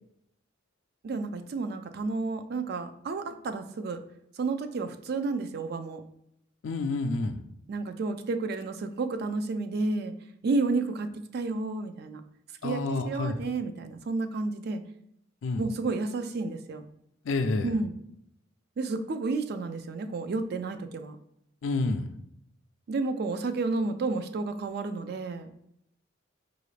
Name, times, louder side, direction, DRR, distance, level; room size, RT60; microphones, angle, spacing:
voice 1, 1.0-4.0 4.4-6.0 7.7-10.1 10.4-12.2 12.6-14.8 15.6-16.9 17.6-17.9 18.8-21.2 22.9-25.5, right 3 dB, 55° right, 9 dB, 0.4 m, -31 dB
voice 2, 6.6-7.4 12.6-13.3 15.4-15.6 17.3-17.7 21.6-22.1, left 3 dB, 80° left, 7 dB, 0.4 m, -29 dB
4.7 x 2.5 x 3.2 m, 0.75 s
head